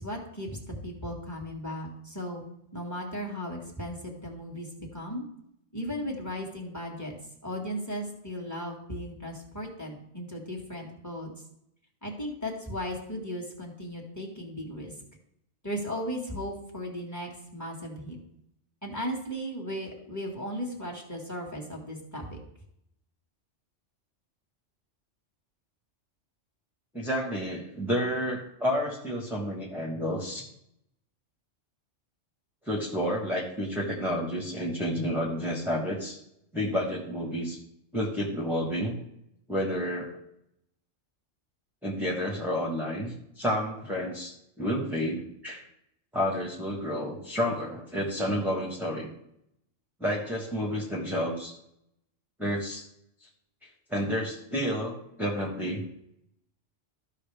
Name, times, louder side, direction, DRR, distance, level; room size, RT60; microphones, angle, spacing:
voice 1, 0.0-2.4 2.7-5.2 5.7-7.1 7.4-11.3 12.0-14.9 15.6-18.2 18.8-22.4, equal, 15° left, 0 dB, 1.9 m, -36 dB
voice 2, 26.9-30.5 32.6-36.2 36.5-37.6 37.9-39.0 39.5-40.2 41.8-45.6 46.1-49.1 50.0-51.5 52.4-52.8 53.2-53.3 53.9-55.8, equal, ahead, -2 dB, 1.2 m, -30 dB
14.0 x 5.6 x 3.5 m, 0.77 s
omnidirectional pair, 1.2 m